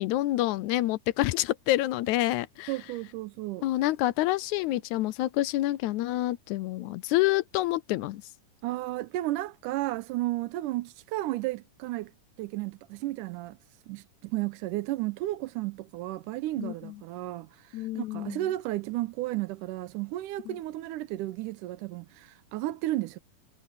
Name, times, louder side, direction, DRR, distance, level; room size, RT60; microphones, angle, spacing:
voice 1, 0.0-2.7 3.6-8.2 16.6-16.9 17.7-18.4 20.5-20.6, left 16 dB, 80° left, 1.8 m, -28 dB
voice 2, 2.7-3.7 8.6-12.1 12.4-13.6 13.9-23.2, right 16 dB, 85° right, 2.2 m, -33 dB
omnidirectional pair, 3.8 m